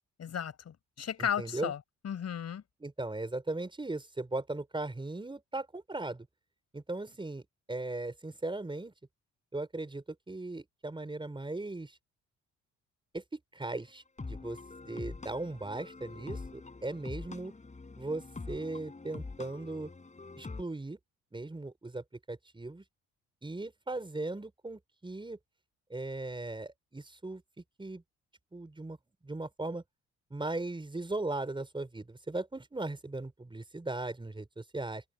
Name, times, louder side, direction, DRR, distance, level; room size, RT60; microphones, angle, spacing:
voice 1, 0.2-1.8 2.0-2.6, left 8 dB, 55° left, 4.6 m, -35 dB
voice 2, 1.2-1.7 2.8-6.3 6.7-7.4 7.7-8.9 9.5-12.0 13.1-14.6 14.8-17.5 18.0-19.9 20.4-21.0 21.3-22.8 23.4-25.4 25.9-28.0 28.5-29.0 29.2-29.8 30.3-35.0, right 2 dB, 15° right, 4.9 m, -38 dB
sound 1, 13.7-20.6, left 3 dB, 25° left, 6.1 m, -45 dB
cardioid pair, 90°, 30 cm